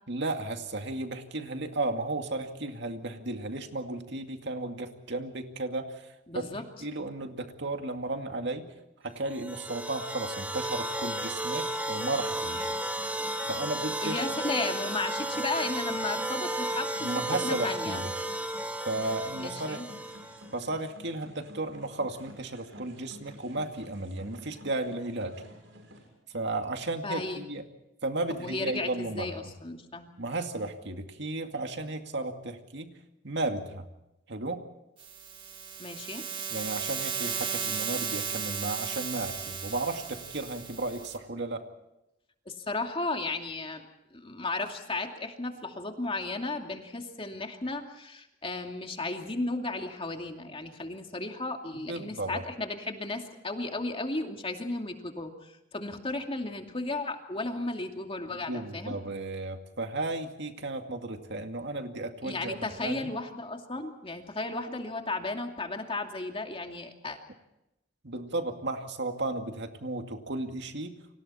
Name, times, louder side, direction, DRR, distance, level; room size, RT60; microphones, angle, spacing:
voice 1, 0.1-6.1 6.3-8.7 9.0-12.7 13.5-14.2 17.0-18.1 18.9-19.8 20.5-25.4 26.3-27.6 28.0-29.3 30.2-32.9 33.2-33.9 34.3-34.6 36.5-41.6 51.9-52.4 58.5-63.1 68.0-71.0, right 2 dB, 65° right, 5 dB, 2.3 m, -34 dB
voice 2, 6.3-6.6 14.0-18.0 19.4-19.8 27.0-27.4 28.3-30.1 35.8-36.2 42.5-43.8 44.1-58.9 62.2-67.2, left 2 dB, 30° left, 3 dB, 2.6 m, -34 dB
sound 1, 9.2-20.5, right 1 dB, 10° right, 2.6 m, -33 dB
sound 2, 11.9-26.1, equal, 90° right, 6.9 m, -51 dB
sound 3, 35.0-41.2, right 6 dB, 30° right, 3.2 m, -35 dB
30.0 x 25.5 x 4.3 m, 0.89 s
head